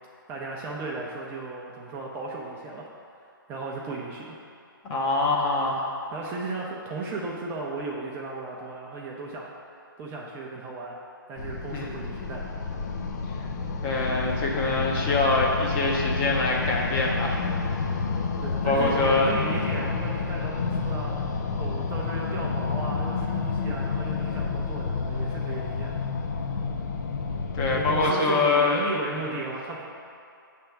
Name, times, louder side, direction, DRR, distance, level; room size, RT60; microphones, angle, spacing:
voice 1, 0.3-2.9 3.5-4.4 6.1-9.5 10.0-11.0 11.3-12.5 18.4-21.1 21.6-26.0 27.7-29.8, right 3 dB, 20° right, -3 dB, 0.6 m, -35 dB
voice 2, 4.9-5.8 11.7-11.9 13.8-17.4 18.7-19.3 27.5-29.2, left 3 dB, 20° left, -2 dB, 0.8 m, -24 dB
sound 1, 11.4-28.1, left 4 dB, 45° left, 0.6 m, -29 dB
7.4 x 3.5 x 5.9 m, 2.5 s
figure-of-eight pair, 135°, 12 cm